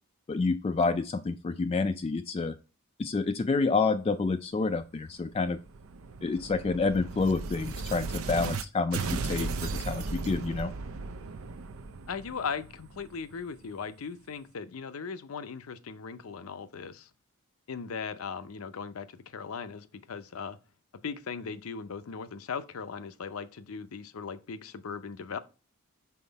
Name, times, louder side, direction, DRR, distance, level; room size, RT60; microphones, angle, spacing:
voice 1, 0.3-2.6 3.0-5.6 6.2-10.7, left 4 dB, 30° left, 0.3 m, -28 dB
sound 1, 5.2-8.6 8.9-13.6, right 4 dB, 75° right, 0.5 m, -36 dB
voice 2, 12.1-17.1 17.7-20.6 21.0-25.4, left 5 dB, 80° left, 0.6 m, -38 dB
5.7 x 4.3 x 4.0 m
head